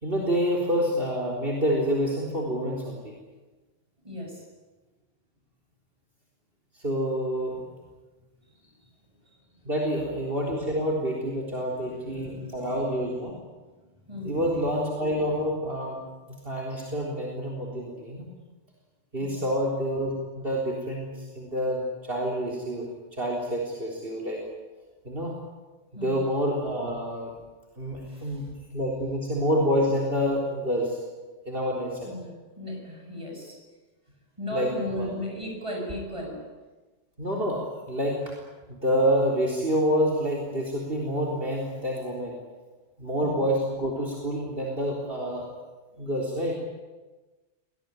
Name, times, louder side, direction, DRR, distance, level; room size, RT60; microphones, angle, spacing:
voice 1, 0.0-3.1 6.7-7.6 9.6-13.3 14.2-16.0 16.3-18.3 19.1-24.4 25.0-25.3 26.0-27.3 27.8-28.5 28.7-31.0 31.5-32.1 34.5-34.7 35.0-35.1 37.2-38.4 38.7-42.3 43.0-45.5 46.0-46.5, equal, 50° right, -1 dB, 4.1 m, -27 dB
voice 2, 4.0-4.5 8.5-8.9 9.3-9.7 11.6-12.8 13.6-13.7 14.0-14.4 16.7-16.8 19.2-19.4 25.9-26.3 28.1-28.5 32.0-33.6 34.4-36.4 43.2-43.5, left 1 dB, 25° right, 1 dB, 7.7 m, -37 dB
24.5 x 18.5 x 9.9 m, 1.2 s
omnidirectional pair, 1.2 m